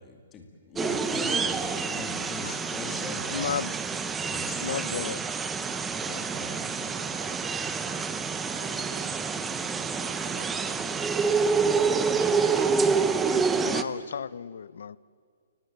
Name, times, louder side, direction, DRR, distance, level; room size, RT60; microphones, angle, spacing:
voice 1, 0.0-3.6 4.2-5.1 6.0-6.5, left 4 dB, 15° left, 2.2 m, -41 dB
sound 1, 0.8-13.8, right 5 dB, 10° right, 0.6 m, -27 dB
voice 2, 3.3-3.7 4.6-5.4 13.6-15.0, left 7 dB, 70° left, 0.5 m, -33 dB
voice 3, 6.0-8.0 8.5-10.7 12.2-12.7 13.3-13.5, right 6 dB, 50° right, 3.0 m, -47 dB
29.0 x 18.5 x 7.9 m
hypercardioid pair, 170°, 0 cm